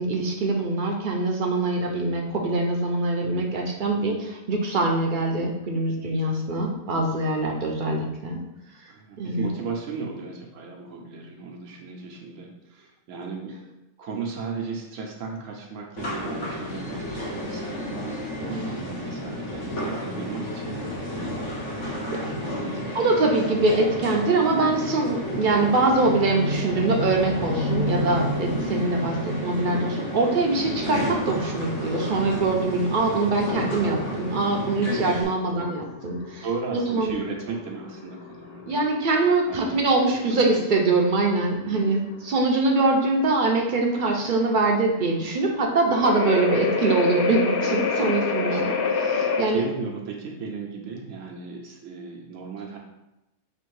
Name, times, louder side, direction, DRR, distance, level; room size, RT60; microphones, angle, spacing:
voice 1, 0.0-8.4 9.2-9.5 18.5-18.7 22.2-22.3 22.9-36.5 36.9-37.1 38.7-49.6, right 2 dB, 55° right, 1 dB, 0.6 m, -23 dB
voice 2, 8.9-13.6 14.0-21.9 22.2-23.0 35.5-35.7 36.4-38.8 39.5-40.6 41.6-42.0 48.5-48.6 49.3-52.8, right 4 dB, 90° right, 0 dB, 1.0 m, -36 dB
sound 1, 16.0-35.2, equal, 75° left, 1.2 m, -30 dB
sound 2, 31.5-49.4, left 4 dB, 60° left, 0.7 m, -29 dB
3.4 x 2.6 x 4.6 m, 0.93 s
omnidirectional pair, 1.3 m